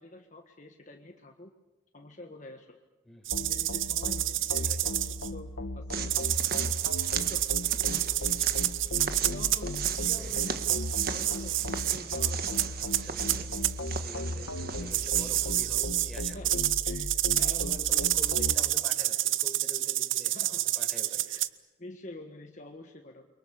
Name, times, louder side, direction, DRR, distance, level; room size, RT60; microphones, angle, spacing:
voice 1, 0.0-1.5 1.9-2.8 3.3-6.2 7.1-7.4 7.8-8.4 9.3-10.6 11.0-12.7 14.2-14.5 16.3-16.5 16.8-17.1 17.4-18.1 20.3-20.6 21.3-21.4 21.8-23.3, left 2 dB, 40° left, 3 dB, 1.5 m, -47 dB
voice 2, 3.0-3.5 4.7-4.8 8.2-8.5 10.2-10.5 12.6-13.6 14.0-16.6 17.3-21.4, left 1 dB, ahead, 1 dB, 4.9 m, -47 dB
sound 1, 3.2-5.3 6.1-13.7 14.9-21.5, right 15 dB, 85° right, 0.8 m, -29 dB
sound 2, 3.3-18.6, left 1 dB, 85° left, 1.5 m, -37 dB
sound 3, 5.9-15.6, right 7 dB, 50° right, 1.5 m, -38 dB
30.0 x 23.5 x 7.0 m, 1.1 s
head